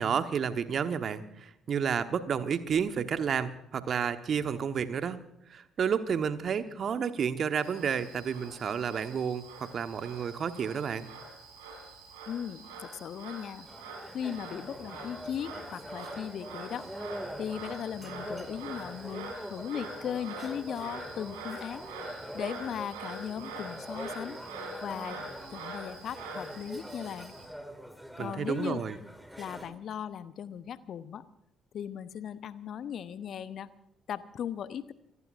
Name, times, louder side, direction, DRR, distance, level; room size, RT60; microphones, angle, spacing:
voice 1, 0.0-5.2 5.5-11.1 28.2-29.0, right 7 dB, 45° right, 10 dB, 1.2 m, -31 dB
Frog, 7.6-27.5, right 3 dB, 70° right, 4.6 m, -45 dB
voice 2, 12.3-13.7 14.1-16.8 17.4-21.9 22.3-24.4 24.8-25.2 25.5-27.3 28.2-28.8 29.4-31.2 31.7-33.7 34.1-34.9, left 9 dB, 50° left, 15 dB, 0.9 m, -38 dB
sound 1, 13.6-29.7, equal, ahead, 2.4 m, -44 dB
27.5 x 18.0 x 2.6 m, 0.80 s
figure-of-eight pair, 45°, 0 cm